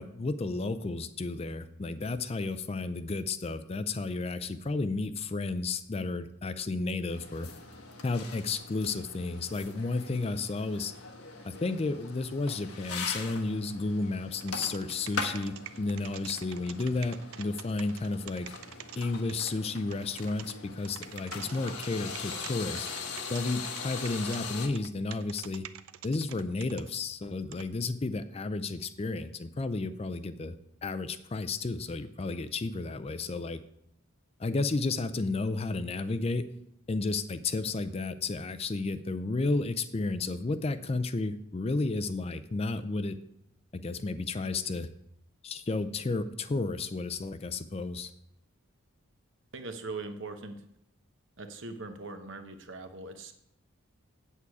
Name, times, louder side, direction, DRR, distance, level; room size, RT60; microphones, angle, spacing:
voice 1, 0.0-7.5 8.0-10.9 11.4-18.5 19.0-22.9 23.3-25.6 26.0-30.5 30.8-33.6 34.4-36.5 36.9-43.2 43.7-44.9 45.4-48.1, left 3 dB, 30° left, 12 dB, 0.4 m, -32 dB
sound 1, 7.1-24.7, left 4 dB, 90° left, 1.2 m, -41 dB
sound 2, 14.4-19.5 19.9-20.5 20.8-22.5 22.8-26.9 27.5-27.7, right 11 dB, 80° right, 0.5 m, -45 dB
voice 2, 49.5-50.6 51.4-53.3, right 3 dB, 60° right, 7 dB, 0.9 m, -41 dB
8.4 x 8.2 x 4.7 m, 0.78 s
head